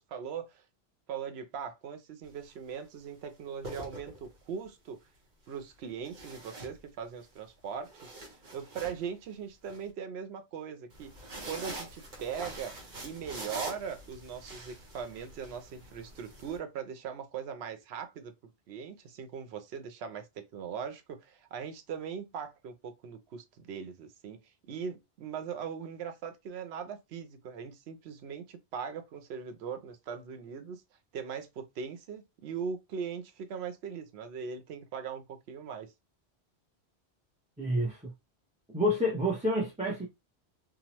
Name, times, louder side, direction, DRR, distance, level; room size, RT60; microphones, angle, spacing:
voice 1, 0.1-0.6 1.1-5.0 5.5-8.1 8.5-11.1 11.5-12.8 13.0-18.3 18.7-20.3 20.5-24.4 24.7-30.8 31.1-35.9, right 7 dB, 75° right, 0.8 m, -40 dB
sound 1, 2.2-2.5 3.4-4.6 6.0-7.3 7.7-9.8 10.9-16.6, right 2 dB, 55° right, 1.0 m, -44 dB
voice 2, 37.6-38.1 38.7-40.1, equal, 10° right, 0.4 m, -29 dB
2.9 x 2.0 x 2.9 m
omnidirectional pair, 1.1 m